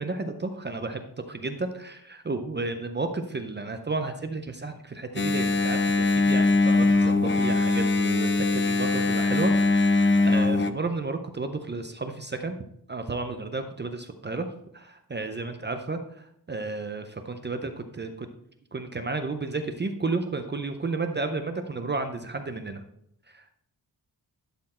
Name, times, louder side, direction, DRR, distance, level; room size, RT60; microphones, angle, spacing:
voice 1, 0.0-12.6 12.9-14.5 14.7-16.0 16.5-18.3 18.7-22.8 23.3-23.5, right 3 dB, 30° right, 7 dB, 0.5 m, -32 dB
Engine, 5.2-10.7, left 3 dB, 30° left, 0.5 m, -22 dB
11.5 x 4.3 x 4.2 m, 0.73 s
wide cardioid pair, 155°, 39 cm